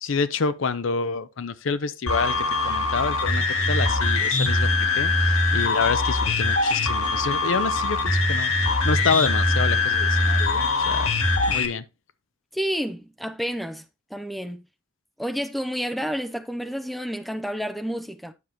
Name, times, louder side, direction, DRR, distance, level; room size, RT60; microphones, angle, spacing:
voice 1, 0.0-4.7 5.0-5.1 5.5-8.5 8.8-11.1 11.5-11.8, left 5 dB, 70° left, 0.6 m, -27 dB
sound 1, 2.1-11.7, left 2 dB, 90° left, 1.6 m, -22 dB
voice 2, 12.5-13.8 14.1-14.6 15.2-18.3, equal, ahead, 0.5 m, -30 dB
9.6 x 6.4 x 2.9 m
head